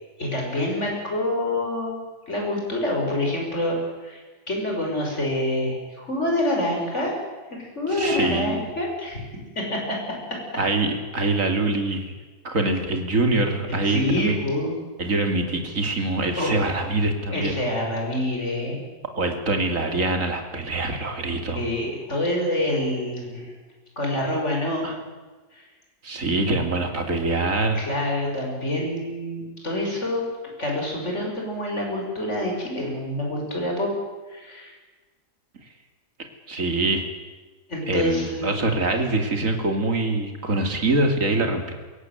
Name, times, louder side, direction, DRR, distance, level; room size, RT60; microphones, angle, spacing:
voice 1, 0.2-2.0 2.3-4.2 4.5-7.2 7.5-9.2 9.6-10.4 13.8-14.7 16.4-16.5 17.3-18.8 21.6-23.5 24.0-24.9 25.5-25.6 27.7-30.3 30.6-33.9 34.3-34.8 37.7-38.6, left 1 dB, 40° left, 0 dB, 6.1 m, -26 dB
voice 2, 7.9-8.7 10.6-12.1 12.4-14.3 15.0-17.6 19.2-21.6 24.8-24.9 26.0-27.8 36.5-37.0 37.9-41.7, right 2 dB, 50° right, 5 dB, 3.1 m, -24 dB
22.0 x 17.0 x 9.2 m, 1.3 s
omnidirectional pair, 1.8 m